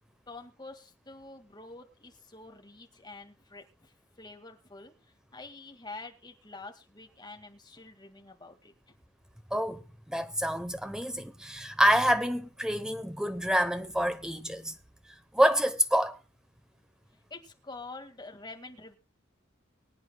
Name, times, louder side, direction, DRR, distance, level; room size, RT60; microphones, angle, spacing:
voice 1, 0.3-8.7 17.3-19.0, left 3 dB, 20° left, 2.0 m, -47 dB
voice 2, 9.5-14.8 15.3-16.2, equal, 5° right, 0.9 m, -27 dB
24.0 x 8.9 x 2.3 m
head